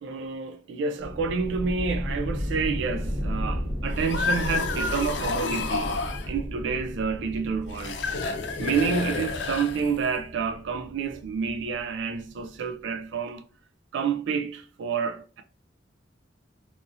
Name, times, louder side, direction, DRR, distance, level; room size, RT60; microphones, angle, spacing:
voice 1, 0.0-6.0 6.3-8.0 8.6-13.4 13.9-15.4, right 5 dB, 70° right, 0.3 m, -29 dB
sound 1, 1.0-12.4, equal, 40° right, 1.2 m, -34 dB
sound 2, 3.9-6.3 7.7-10.1, left 4 dB, 65° left, 0.5 m, -30 dB
2.7 x 2.7 x 2.4 m
head